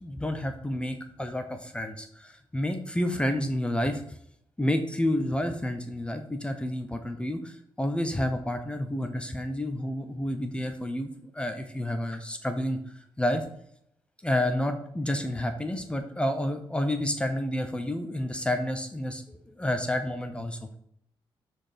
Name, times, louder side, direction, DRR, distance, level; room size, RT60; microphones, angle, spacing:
voice 1, 0.0-4.0 4.6-12.8 13.2-13.4 14.2-20.8, left 1 dB, 10° left, 6 dB, 0.9 m, -30 dB
11.5 x 4.5 x 5.1 m, 0.71 s
cardioid pair, 120°, 9 cm